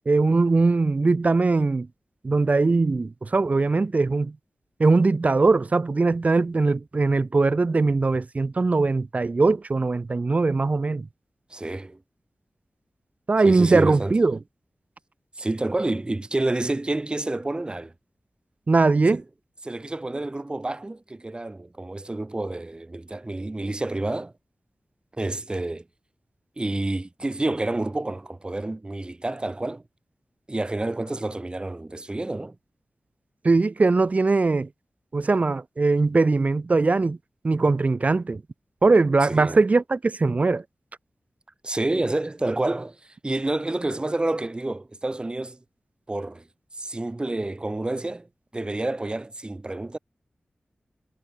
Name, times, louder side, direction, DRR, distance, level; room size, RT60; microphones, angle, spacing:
voice 1, 0.1-1.9 2.2-4.3 4.8-11.1 13.3-14.4 18.7-19.2 33.4-34.7 35.1-37.2 37.4-38.4 38.8-40.6, right 3 dB, 40° right, 0.9 m, -21 dB
voice 2, 11.5-12.0 13.4-14.2 15.4-17.9 19.1-19.2 19.6-24.3 25.2-25.8 26.6-29.8 30.5-32.5 39.2-39.6 41.6-45.6 46.1-46.4 46.8-48.3 48.5-50.0, right 2 dB, 25° right, 4.8 m, -29 dB
wide cardioid pair, 105°, 4 cm